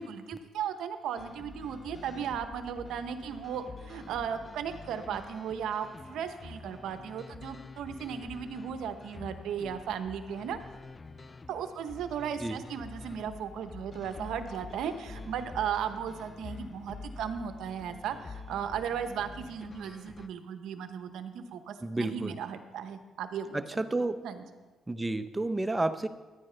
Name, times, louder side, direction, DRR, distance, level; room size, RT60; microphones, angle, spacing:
voice 1, 0.0-10.6 11.5-24.4, right 8 dB, 80° right, 9 dB, 0.8 m, -36 dB
sound 1, 1.2-20.3, left 3 dB, 30° left, 0.5 m, -47 dB
voice 2, 21.8-22.3 23.5-24.2 24.9-26.1, right 2 dB, 15° right, 10 dB, 0.7 m, -30 dB
14.0 x 10.0 x 3.3 m, 1.2 s
cardioid pair, 90°, 0 cm